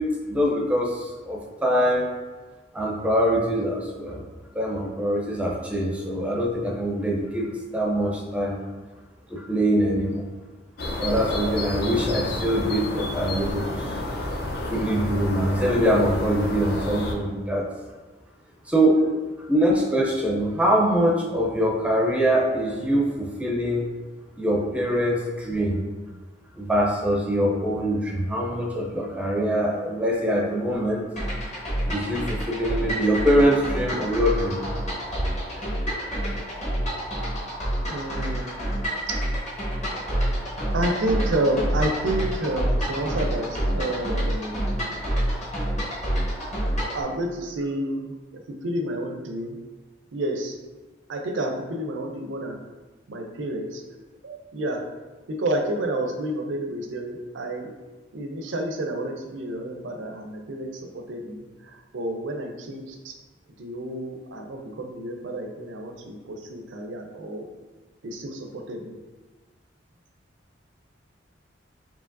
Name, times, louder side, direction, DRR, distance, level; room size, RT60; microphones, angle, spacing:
voice 1, 0.0-2.1 2.7-4.2 4.5-8.6 9.3-10.2 11.0-13.9 14.7-17.6 18.7-19.0 19.5-23.9 24.4-25.8 26.5-31.0 31.9-34.6, equal, 5° right, -2 dB, 0.5 m, -23 dB
sound 1, 10.8-17.1, left 1 dB, 55° left, 0.5 m, -30 dB
sound 2, 31.2-47.0, equal, 40° left, 1.0 m, -28 dB
voice 2, 37.9-39.2 39.6-40.1 40.7-44.7 45.1-45.5 46.9-49.6 50.1-50.6 51.1-52.6 53.1-53.8 54.2-54.9 55.3-57.7 58.1-63.2 63.6-67.5 68.0-69.0, right 1 dB, 80° right, 3 dB, 0.6 m, -30 dB
4.8 x 2.8 x 2.6 m, 1.3 s
head